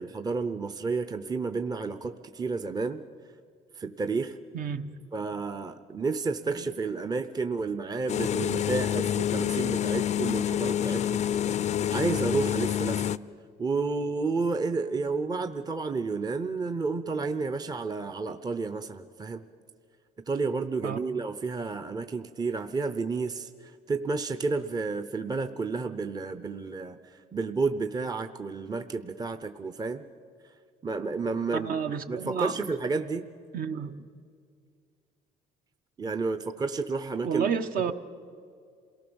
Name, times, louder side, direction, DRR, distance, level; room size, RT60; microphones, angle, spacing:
voice 1, 0.0-3.0 3.8-4.3 5.1-11.2 11.5-13.0 13.6-19.4 20.3-30.0 30.8-33.3 36.0-37.5, right 4 dB, 25° right, 0.8 m, -31 dB
voice 2, 4.5-4.9 20.8-21.0 31.5-32.6 33.5-34.0 37.2-37.9, right 7 dB, 55° right, 1.2 m, -30 dB
sound 1, 8.1-13.2, left 10 dB, 45° left, 0.5 m, -27 dB
27.5 x 18.5 x 7.1 m
cardioid pair, 110°, 17 cm